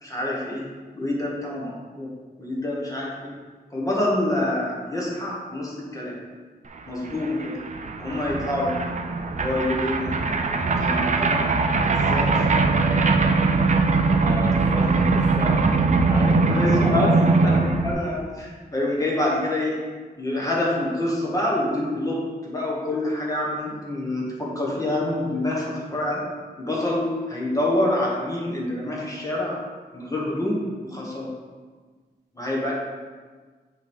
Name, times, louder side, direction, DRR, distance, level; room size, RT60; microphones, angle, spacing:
voice 1, 0.0-3.4 3.7-6.2 6.9-7.6 8.0-8.8 9.4-10.2 10.8-11.5 11.9-12.6 16.4-19.8 20.2-26.3 26.6-29.6 29.9-31.3 32.3-32.7, left 1 dB, 20° left, -4 dB, 1.3 m, -27 dB
sound 1, 6.8-6.9 7.0-17.9, right 3 dB, 45° right, 0.4 m, -21 dB
voice 2, 14.2-15.6 16.0-17.2, right 1 dB, 20° right, -5 dB, 0.8 m, -31 dB
5.9 x 3.2 x 5.4 m, 1.4 s
wide cardioid pair, 135°, 17 cm